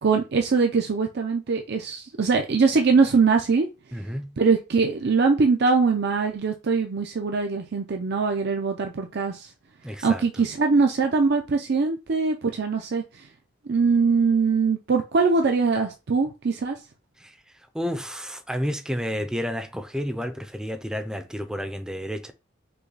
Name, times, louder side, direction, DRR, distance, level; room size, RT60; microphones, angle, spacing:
voice 1, 0.0-3.7 4.4-9.5 10.0-13.3 13.7-16.8, right 4 dB, 60° right, 0.5 m, -22 dB
voice 2, 3.9-4.3 9.8-10.2 17.7-22.3, equal, 5° right, 0.5 m, -30 dB
5.6 x 2.2 x 3.9 m
head